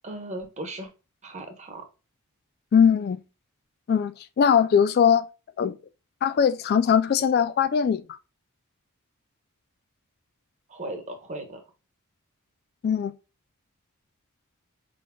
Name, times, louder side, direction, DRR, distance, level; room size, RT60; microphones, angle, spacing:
voice 1, 0.0-0.9 1.2-1.8 10.7-11.6, right 1 dB, 35° right, 1.2 m, -37 dB
voice 2, 2.7-3.2 3.9-5.3 5.6-5.7 6.2-8.0 12.8-13.1, left 7 dB, 50° left, 0.3 m, -20 dB
5.2 x 3.9 x 2.2 m
head